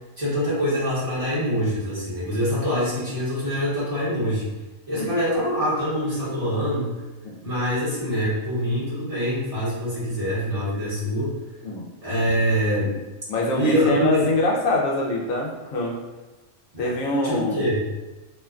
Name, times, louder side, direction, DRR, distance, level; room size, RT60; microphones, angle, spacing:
voice 1, 0.2-4.5 4.9-7.0 7.4-11.3 12.0-12.9 13.5-14.2 16.7-16.9 17.2-17.9, equal, 30° right, -10 dB, 1.0 m, -24 dB
voice 2, 13.3-16.0 16.8-17.6, left 1 dB, 70° left, -2 dB, 1.0 m, -24 dB
2.9 x 2.2 x 2.3 m, 1.1 s
omnidirectional pair, 1.5 m